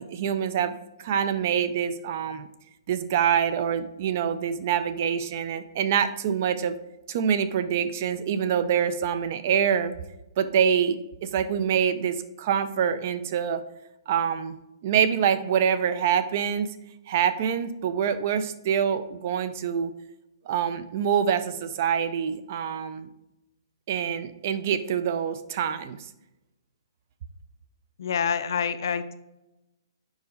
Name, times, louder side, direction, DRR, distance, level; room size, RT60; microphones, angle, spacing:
voice 1, 0.0-2.5 2.9-6.8 7.1-9.9 10.4-13.6 14.1-16.7 17.1-19.9 20.5-23.1 23.9-26.0, right 8 dB, 30° right, 12 dB, 0.4 m, -25 dB
voice 2, 28.0-29.1, left 7 dB, 50° left, 10 dB, 0.4 m, -27 dB
5.2 x 4.7 x 4.0 m, 0.97 s
hypercardioid pair, 175°, 3 cm